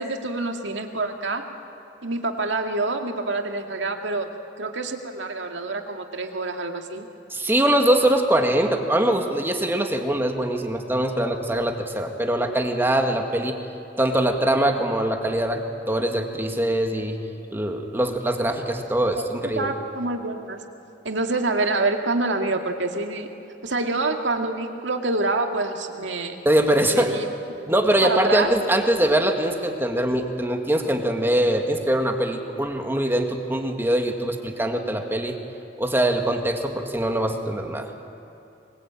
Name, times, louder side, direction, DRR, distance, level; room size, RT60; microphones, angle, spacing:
voice 1, 0.0-1.4 2.0-4.3 4.6-7.1 19.1-19.2 19.6-20.6 21.0-23.3 23.6-26.4 26.9-27.3 28.0-28.5, right 2 dB, 80° right, 4 dB, 2.2 m, -26 dB
voice 2, 7.3-13.6 14.0-17.2 17.5-19.7 26.5-27.2 27.7-35.4 35.8-37.9, right 1 dB, 10° right, 4 dB, 2.0 m, -22 dB
25.0 x 21.5 x 9.0 m, 2.9 s
head